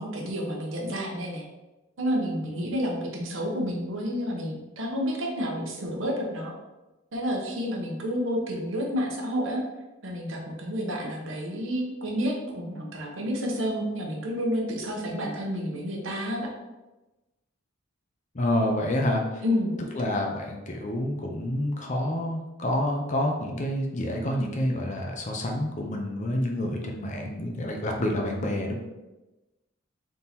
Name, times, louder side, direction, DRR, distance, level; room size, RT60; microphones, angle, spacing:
voice 1, 0.0-1.4 2.0-6.5 7.1-9.6 10.0-16.5 19.4-19.8, equal, 65° right, -1 dB, 0.9 m, -30 dB
voice 2, 18.3-19.4 19.9-28.7, left 1 dB, 35° left, 1 dB, 0.6 m, -28 dB
3.7 x 2.9 x 4.0 m, 1.1 s
head